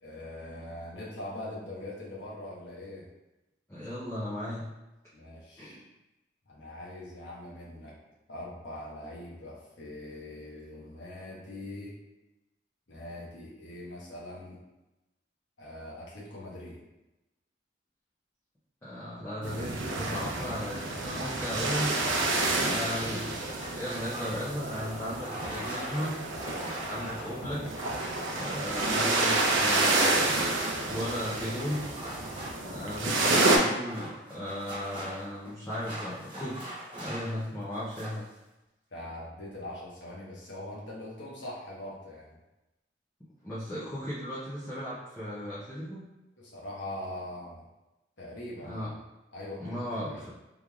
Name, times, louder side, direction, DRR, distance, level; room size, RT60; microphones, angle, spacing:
voice 1, 0.0-3.0 5.1-5.7 6.5-7.9 8.3-12.0 12.9-14.6 15.6-16.8 38.9-42.4 46.4-47.6 48.2-48.8 49.3-50.3, left 1 dB, 75° left, -5 dB, 1.1 m, -42 dB
voice 2, 3.7-4.7 5.6-5.9 18.8-22.0 22.6-26.2 26.9-27.6 28.3-31.8 32.6-38.3 43.4-46.0 48.6-48.9 49.6-50.3, equal, 15° left, -10 dB, 0.6 m, -36 dB
sound 1, 19.4-33.6, right 2 dB, 90° right, 0.6 m, -29 dB
sound 2, 22.0-29.7 30.2-37.4 37.7-38.3, right 1 dB, 25° right, 1.1 m, -42 dB
3.7 x 3.1 x 2.3 m, 0.99 s
head